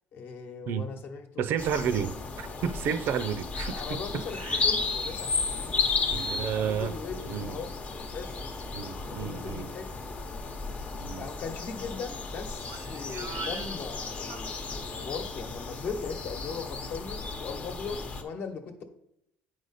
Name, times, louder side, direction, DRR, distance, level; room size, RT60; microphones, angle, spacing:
voice 1, 0.1-1.4 1.7-1.8 3.7-5.8 6.5-7.7 8.0-8.3 9.1-9.9 11.2-18.8, left 5 dB, 50° left, 1.1 m, -39 dB
voice 2, 1.4-4.7 6.1-6.9 7.3-7.6 8.7-9.7 11.0-11.3 12.7-13.7 14.3-14.4, right 8 dB, 55° right, 0.5 m, -32 dB
sound 1, 1.6-18.2, left 4 dB, 30° left, 0.8 m, -34 dB
8.7 x 5.0 x 4.1 m
cardioid pair, 150°, 4 cm